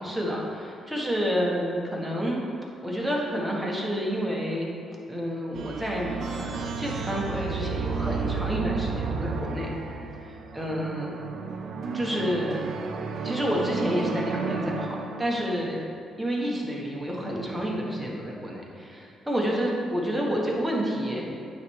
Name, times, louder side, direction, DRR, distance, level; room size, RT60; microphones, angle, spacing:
voice 1, 0.0-2.4 2.8-4.7 5.1-9.7 10.2-11.2 11.9-12.6 13.2-15.8 16.2-21.2, equal, 5° right, -3 dB, 1.4 m, -29 dB
sound 1, 5.5-15.6, right 5 dB, 60° right, 0.5 m, -32 dB
9.4 x 3.4 x 4.7 m, 2.6 s
cardioid pair, 90°, 0 cm